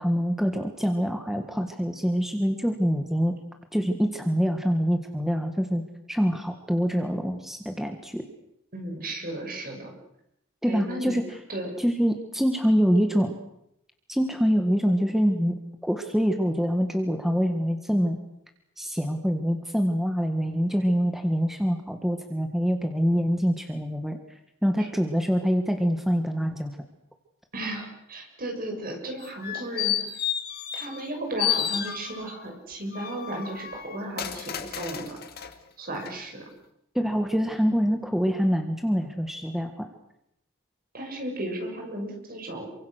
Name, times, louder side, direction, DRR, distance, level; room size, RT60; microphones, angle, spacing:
voice 1, 0.0-3.3 3.7-5.8 6.1-8.2 10.6-11.2 11.8-13.4 14.1-15.5 15.8-18.2 18.8-24.2 24.6-26.7 36.9-39.9, equal, ahead, 5 dB, 1.7 m, -25 dB
voice 2, 8.7-9.9 10.6-11.1 11.5-11.7 24.8-24.9 27.5-30.0 30.7-35.1 35.8-36.5 40.9-42.7, right 1 dB, 45° right, 3 dB, 6.6 m, -34 dB
sound 1, 29.2-31.1 31.4-32.4 32.9-35.5 36.0-36.1, left 10 dB, 50° left, 2.3 m, -31 dB
28.0 x 24.5 x 6.5 m, 0.80 s
head